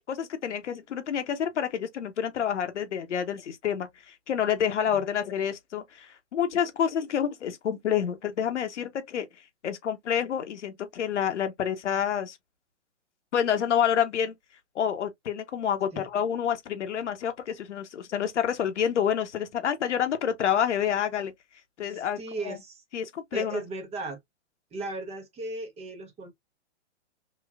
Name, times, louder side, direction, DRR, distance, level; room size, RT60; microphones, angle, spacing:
voice 1, 0.0-9.3 9.6-12.4 13.3-14.3 14.7-21.3 21.8-22.2 22.4-22.6 22.9-23.6, left 8 dB, 80° left, 1.0 m, -28 dB
voice 2, 21.8-22.8 23.3-24.2 24.7-26.3, right 3 dB, 20° right, 0.9 m, -36 dB
3.3 x 3.0 x 2.3 m
hypercardioid pair, 130°, 35 cm